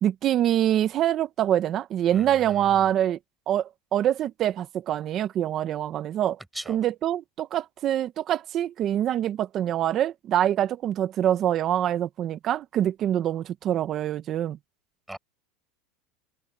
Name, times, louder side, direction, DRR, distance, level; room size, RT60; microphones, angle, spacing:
voice 1, 0.0-3.2 3.5-6.4 6.7-14.6, right 11 dB, 35° right, 1.1 m, -25 dB
voice 2, 2.1-2.9 6.5-6.8 15.1-15.2, right 1 dB, 5° right, 6.3 m, -40 dB
supercardioid pair, 140°, 0 cm